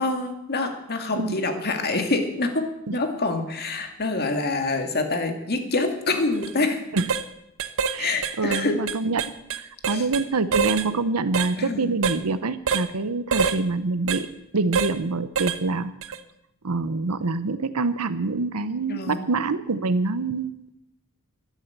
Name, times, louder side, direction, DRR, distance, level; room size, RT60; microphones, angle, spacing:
voice 1, 0.0-2.7 2.9-6.8 8.0-8.8 9.9-10.1 11.6-11.9 18.9-19.2, left 3 dB, 45° left, 6 dB, 2.1 m, -26 dB
sound 1, 6.3-6.5 7.0-7.2 7.6-10.2 10.5-10.9 11.3-11.5 12.0-12.2 12.7-12.9 13.3-13.6 14.1-14.2 14.7-14.9 15.4-15.6 16.0-16.2, right 6 dB, 65° right, 0.9 m, -25 dB
voice 2, 7.9-9.2 9.5-14.3 14.5-15.9 16.6-20.7, right 3 dB, 90° right, 13 dB, 0.8 m, -26 dB
13.0 x 11.0 x 8.0 m, 0.82 s
head